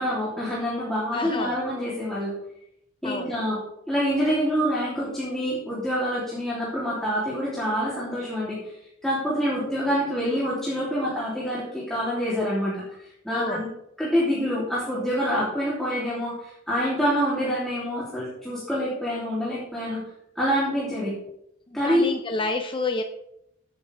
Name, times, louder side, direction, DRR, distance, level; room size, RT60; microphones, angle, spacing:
voice 1, 0.0-2.3 3.0-3.6 3.9-8.6 9.0-13.7 14.0-20.0 20.3-21.1 21.7-22.1, equal, ahead, -8 dB, 3.1 m, -26 dB
voice 2, 1.1-1.6 3.0-3.4 13.3-13.6 21.7-23.0, left 3 dB, 25° left, 5 dB, 0.7 m, -29 dB
15.5 x 9.0 x 3.5 m, 0.79 s
head